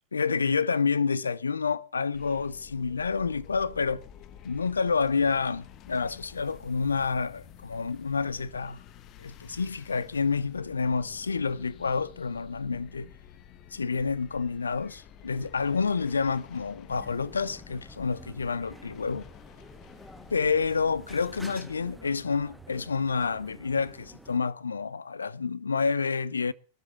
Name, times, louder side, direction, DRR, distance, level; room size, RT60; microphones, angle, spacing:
voice 1, 0.1-4.0 4.4-8.8 9.2-13.1 13.7-19.3 20.3-26.5, left 5 dB, 75° left, 0.7 m, -28 dB
sound 1, 2.1-21.5, left 9 dB, 35° left, 1.0 m, -51 dB
sound 2, 16.9-24.4, right 1 dB, ahead, 1.2 m, -49 dB
21.5 x 7.9 x 7.0 m
figure-of-eight pair, 90°, 0 cm